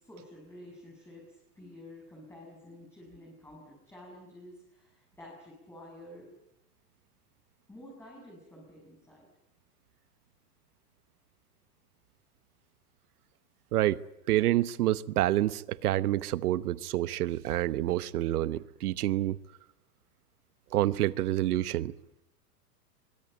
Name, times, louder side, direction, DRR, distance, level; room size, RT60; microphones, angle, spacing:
voice 1, 0.0-6.3 7.7-9.3, left 1 dB, 5° left, 7.0 m, -50 dB
voice 2, 13.7-14.0 14.3-19.4 20.7-21.9, right 14 dB, 70° right, 1.2 m, -28 dB
23.5 x 23.5 x 9.1 m
supercardioid pair, 150°, 47 cm